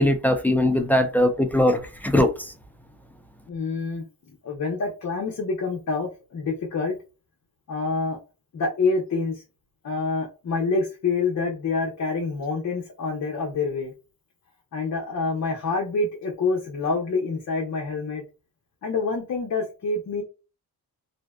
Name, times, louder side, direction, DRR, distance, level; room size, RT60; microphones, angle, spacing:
voice 1, 0.0-2.5, left 1 dB, 5° left, 0.3 m, -21 dB
voice 2, 3.5-4.0 4.4-7.0 7.7-8.2 8.5-9.4 9.8-13.9 14.7-18.2 18.8-20.2, left 4 dB, 45° left, 0.7 m, -27 dB
2.6 x 2.1 x 2.2 m
cardioid pair, 100°, 40 cm